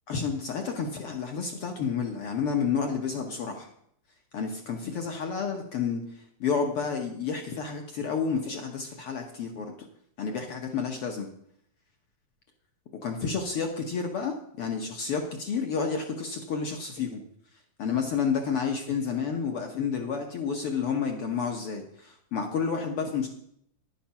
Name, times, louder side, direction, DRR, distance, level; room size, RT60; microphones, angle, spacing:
voice 1, 0.1-3.7 4.3-9.7 10.2-11.3 13.0-17.2 17.8-23.3, left 6 dB, 65° left, 3 dB, 1.4 m, -30 dB
10.5 x 7.2 x 5.8 m, 0.70 s
omnidirectional pair, 3.8 m